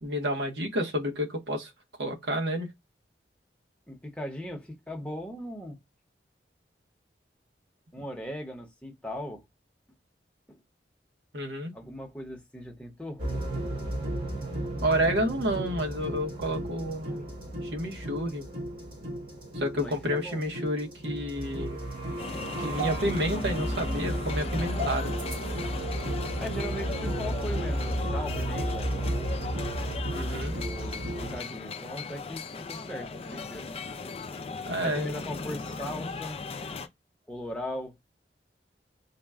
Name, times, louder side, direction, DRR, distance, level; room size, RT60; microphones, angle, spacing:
voice 1, 0.0-1.7 2.0-2.7 11.3-11.7 14.8-17.2 17.6-18.5 19.5-21.8 22.6-25.1 30.1-30.5 34.7-35.2, equal, 80° right, 1.0 m, -30 dB
voice 2, 3.9-5.8 7.9-9.4 10.5-10.6 11.7-13.2 19.7-20.4 26.4-28.9 30.5-33.7 34.8-36.4 37.3-37.9, equal, 5° left, 0.8 m, -38 dB
sound 1, 13.2-31.4, right 1 dB, 55° right, 1.6 m, -33 dB
sound 2, 22.2-36.9, left 4 dB, 35° left, 0.4 m, -38 dB
3.9 x 2.1 x 3.5 m
head